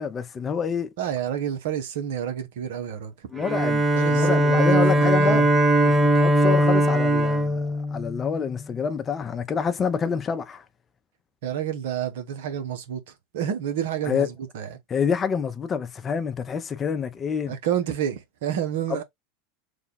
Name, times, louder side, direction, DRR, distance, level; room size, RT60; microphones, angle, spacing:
voice 1, 0.0-0.9 3.3-5.5 5.8-7.6 7.9-10.6 14.0-14.3 14.9-17.6 18.9-19.0, left 6 dB, 30° left, 0.6 m, -27 dB
voice 2, 1.0-3.1 3.9-5.5 11.4-13.0 13.3-14.7 17.5-19.0, right 9 dB, 70° right, 0.9 m, -29 dB
Bowed string instrument, 3.4-8.6, right 1 dB, 20° right, 0.7 m, -20 dB
3.2 x 2.3 x 4.0 m
hypercardioid pair, 90°, 0 cm